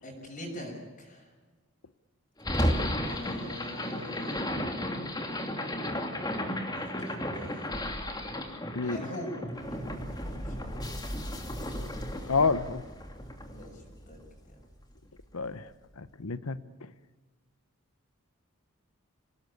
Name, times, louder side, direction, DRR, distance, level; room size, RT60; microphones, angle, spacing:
voice 1, 0.0-0.7 1.0-1.3 3.0-4.7 6.6-7.7 8.8-9.3 9.7-10.9 13.5-14.2 14.4-14.6, equal, 40° left, -1 dB, 6.5 m, -43 dB
sound 1, 2.4-14.6, left 1 dB, 20° left, 2.7 m, -34 dB
voice 2, 12.3-12.8 15.3-15.7 16.0-16.9, left 4 dB, 90° left, 14 dB, 1.1 m, -29 dB
26.0 x 18.5 x 8.6 m, 1.3 s
head